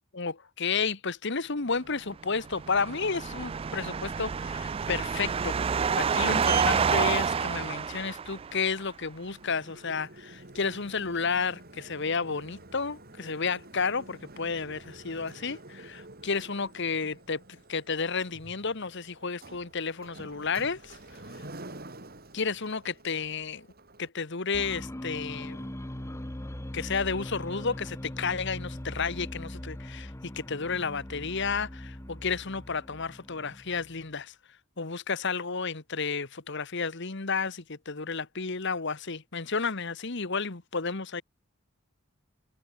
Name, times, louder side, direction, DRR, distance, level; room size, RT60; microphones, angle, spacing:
voice 1, 0.1-21.0 21.3-21.4 22.3-23.7 24.0-25.7 26.7-34.3 34.8-41.2, left 5 dB, 60° left, 1.4 m, -32 dB
sound 1, 2.4-8.7, right 6 dB, 25° right, 0.3 m, -28 dB
Sliding door, 5.8-24.1, right 4 dB, 45° right, 6.0 m, -47 dB
sound 2, 24.5-34.1, left 1 dB, 15° left, 1.0 m, -40 dB
head